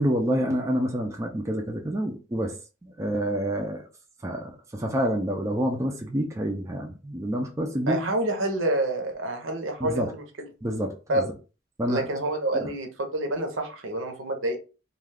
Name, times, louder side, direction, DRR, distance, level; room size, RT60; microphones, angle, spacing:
voice 1, 0.0-2.6 2.8-3.8 4.2-8.0 9.8-10.1 10.6-11.2 11.8-12.1, equal, 15° right, 0.4 m, -28 dB
voice 2, 7.9-10.5 11.1-11.3 11.9-14.6, right 1 dB, 75° right, 0.7 m, -28 dB
2.4 x 2.3 x 3.4 m
head